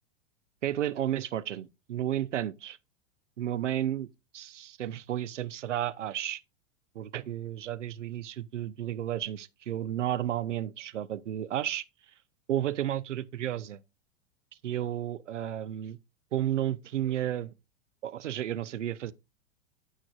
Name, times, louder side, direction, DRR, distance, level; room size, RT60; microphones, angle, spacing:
voice 1, 0.6-2.8 3.4-4.1 4.3-6.4 6.9-11.8 12.5-13.8 14.6-16.0 16.3-17.5 18.0-19.1, right 11 dB, 75° right, 0.6 m, -32 dB
9.5 x 8.3 x 2.3 m
figure-of-eight pair, 95°, 37 cm